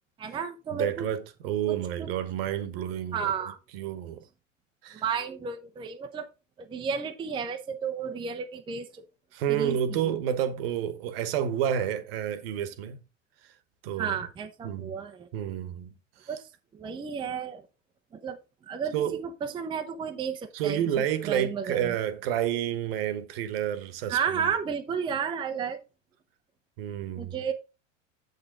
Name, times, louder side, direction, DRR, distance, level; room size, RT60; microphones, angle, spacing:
voice 1, 0.2-1.1 1.7-2.1 3.1-3.6 4.9-6.3 6.6-9.0 9.5-10.1 14.0-15.3 16.3-17.6 18.1-18.4 18.7-22.0 24.1-25.8 27.2-27.5, right 7 dB, 15° right, 0.7 m, -33 dB
voice 2, 0.7-4.2 4.8-5.0 9.3-13.0 13.8-14.2 14.6-14.9 15.3-15.9 16.2-16.3 18.9-19.2 20.5-24.5 26.8-27.3, right 10 dB, 50° right, 1.2 m, -30 dB
7.8 x 6.7 x 3.7 m
figure-of-eight pair, 85°, 38 cm